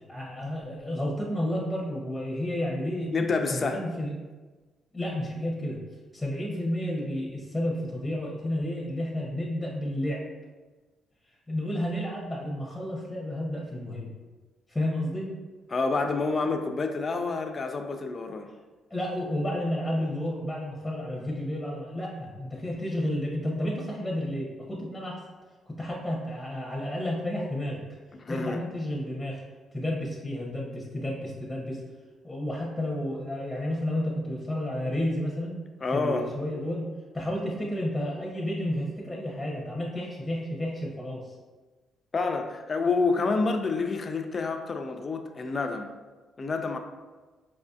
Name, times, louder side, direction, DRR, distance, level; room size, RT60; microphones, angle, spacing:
voice 1, 0.1-4.1 4.9-5.8 6.1-10.2 11.5-14.1 14.7-15.3 18.9-25.2 25.7-27.8 28.3-29.4 29.7-31.8 32.2-35.6 35.9-36.9 37.1-41.3, left 1 dB, 10° left, -3 dB, 0.7 m, -31 dB
voice 2, 3.1-3.8 15.7-18.5 28.2-28.6 35.8-36.3 42.1-45.9 46.4-46.8, left 4 dB, 40° left, 5 dB, 0.4 m, -28 dB
4.8 x 2.5 x 2.3 m, 1.3 s
cardioid pair, 90°, 0 cm